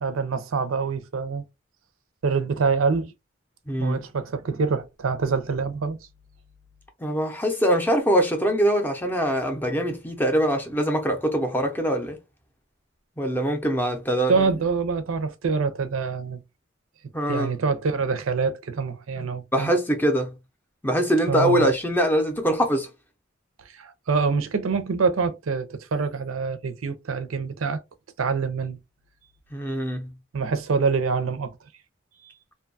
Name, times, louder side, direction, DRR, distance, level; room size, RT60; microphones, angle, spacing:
voice 1, 0.0-1.4 2.2-3.1 3.8-6.1 14.3-16.4 17.3-19.7 21.3-21.7 23.6-27.8 28.2-28.8 30.3-31.6 32.2-32.3, right 5 dB, 85° right, 0.5 m, -25 dB
voice 2, 3.7-4.0 7.0-12.2 13.2-14.4 17.1-17.5 19.2-19.3 19.5-20.3 20.8-22.9 29.5-30.1, equal, 10° left, 0.5 m, -23 dB
2.6 x 2.3 x 2.5 m
head